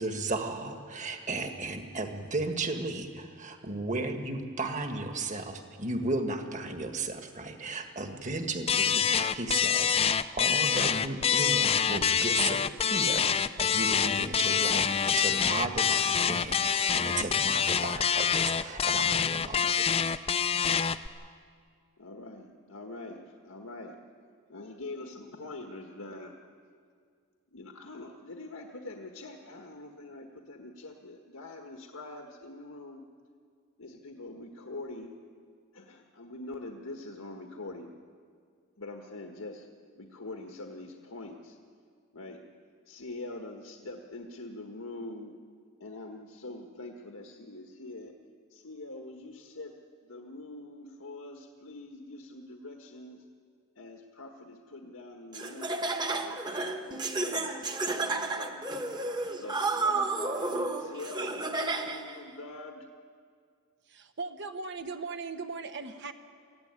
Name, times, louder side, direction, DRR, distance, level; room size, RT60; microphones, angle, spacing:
voice 1, 0.0-12.6 12.9-13.2 13.6-19.9, right 2 dB, 35° right, 5 dB, 1.7 m, -35 dB
sound 1, 8.7-21.1, left 7 dB, 30° left, 0.5 m, -26 dB
voice 2, 22.0-24.0 24.5-26.3 27.5-33.0 33.8-35.1 35.7-37.9 38.8-39.7 40.0-41.6 42.1-42.4 42.9-45.3 45.8-48.1 48.5-49.7 50.0-53.2 53.8-58.7 59.3-62.9, left 2 dB, 90° left, 2 dB, 1.6 m, -44 dB
Laughter, 55.3-62.1, right 3 dB, 20° right, 1.2 m, -32 dB
voice 3, 63.8-66.1, right 4 dB, 55° right, 7 dB, 1.0 m, -38 dB
23.5 x 15.0 x 9.6 m, 2.1 s
head